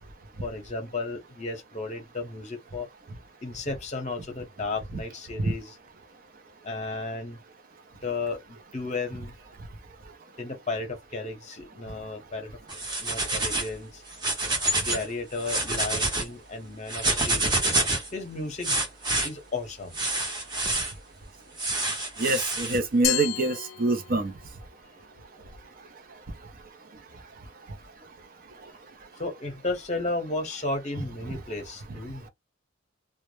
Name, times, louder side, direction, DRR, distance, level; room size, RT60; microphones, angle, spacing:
voice 1, 0.4-2.9 3.4-5.8 6.6-7.4 8.0-9.3 10.4-12.5 13.0-14.0 14.8-17.5 18.1-18.8 19.2-20.0 29.2-32.3, left 3 dB, 35° left, 0.8 m, -34 dB
sound 1, 12.7-13.7 14.1-15.0 15.4-16.2 16.9-18.1 18.6-19.3 19.9-20.9 21.6-22.8, right 2 dB, 20° right, 0.8 m, -27 dB
voice 2, 22.2-24.3 31.3-31.4, right 2 dB, 45° right, 0.5 m, -25 dB
Glass, 23.0-24.5, left 15 dB, 80° left, 0.3 m, -31 dB
2.2 x 2.0 x 2.9 m
head